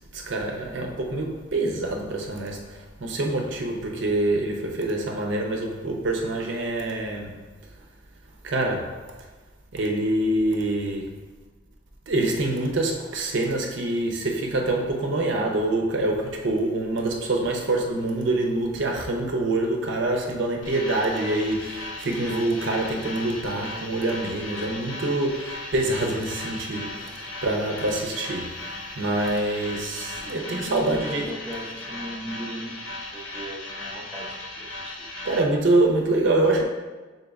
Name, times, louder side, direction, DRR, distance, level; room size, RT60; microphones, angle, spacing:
voice 1, 0.1-7.5 8.4-9.0 9.7-11.2 12.1-28.7 28.9-31.3 35.2-36.6, right 2 dB, 70° right, 0.6 m, -25 dB
sound 1, 20.6-35.4, left 2 dB, 85° left, 0.7 m, -37 dB
voice 2, 30.2-35.1 36.5-36.6, right 1 dB, 10° right, 0.6 m, -37 dB
5.1 x 4.0 x 2.3 m
head